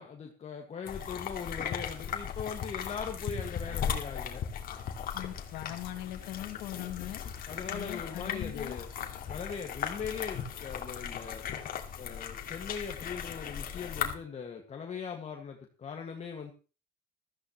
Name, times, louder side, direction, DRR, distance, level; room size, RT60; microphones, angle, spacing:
voice 1, 0.0-4.4 7.5-8.9 9.3-11.4 12.0-16.5, left 6 dB, 40° left, 2 dB, 1.9 m, -40 dB
sound 1, 0.9-14.1, left 8 dB, 60° left, 2.3 m, -37 dB
voice 2, 5.1-7.2 7.7-8.8, left 14 dB, 90° left, 6 dB, 2.3 m, -40 dB
15.5 x 14.5 x 3.1 m, 0.34 s
cardioid pair, 110°, 17 cm